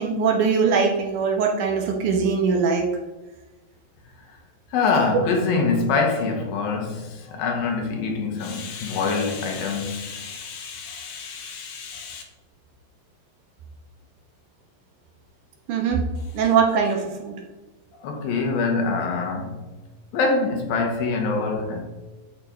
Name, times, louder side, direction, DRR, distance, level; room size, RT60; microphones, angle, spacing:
voice 1, 0.0-2.9 15.7-16.0 16.3-17.3, right 5 dB, 65° right, 1 dB, 2.5 m, -21 dB
voice 2, 4.7-12.2 18.0-19.6 20.1-21.8, left 4 dB, 85° left, 1 dB, 3.4 m, -25 dB
13.5 x 4.7 x 5.2 m, 1.2 s
omnidirectional pair, 4.1 m